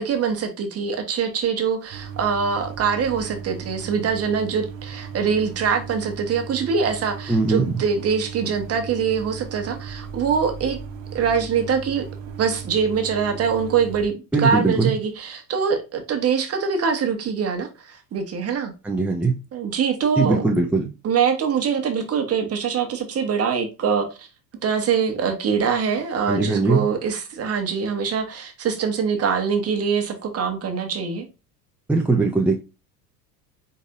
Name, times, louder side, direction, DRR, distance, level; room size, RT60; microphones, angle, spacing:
voice 1, 0.0-10.8 11.1-12.0 12.4-18.7 19.5-20.4 21.0-24.3 24.6-31.3, right 6 dB, 30° right, 1.3 m, -23 dB
sound 1, 1.9-14.1, right 6 dB, 60° right, 1.0 m, -37 dB
voice 2, 7.3-7.8 14.3-14.9 18.8-19.4 20.2-20.9 26.3-26.8 31.9-32.6, right 3 dB, 5° right, 0.6 m, -20 dB
4.9 x 3.9 x 2.5 m
figure-of-eight pair, 75°, 48 cm